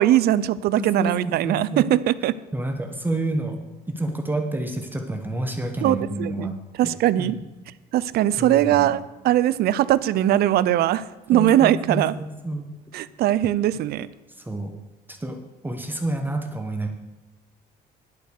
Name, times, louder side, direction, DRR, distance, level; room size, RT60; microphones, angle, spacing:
voice 1, 0.0-2.3 5.8-6.5 6.8-7.4 7.9-12.1 12.9-14.1, right 12 dB, 70° right, 17 dB, 0.5 m, -20 dB
voice 2, 0.8-1.9 2.5-6.6 7.2-7.4 8.4-8.9 11.3-12.7 14.5-14.7 15.1-15.4 15.6-16.9, right 2 dB, 10° right, 3 dB, 1.2 m, -29 dB
11.0 x 7.8 x 6.5 m, 1.1 s
cardioid pair, 110°, 17 cm